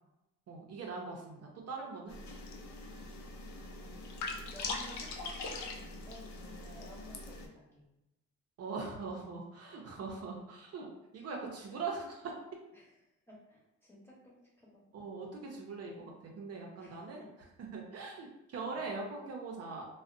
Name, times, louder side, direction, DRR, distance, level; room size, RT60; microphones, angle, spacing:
voice 1, 0.5-2.1 8.6-12.3 14.9-17.2 17.7-19.9, right 4 dB, 55° right, 0 dB, 0.5 m, -41 dB
sound 1, 2.1-7.5, left 3 dB, 65° left, 0.5 m, -42 dB
voice 2, 3.6-4.0 4.5-7.8 9.7-9.9 12.7-12.9 13.3-14.8 16.8-17.0 18.7-18.8, right 1 dB, 10° left, -5 dB, 0.8 m, -54 dB
2.4 x 2.0 x 2.5 m, 0.93 s
cardioid pair, 90°, 30 cm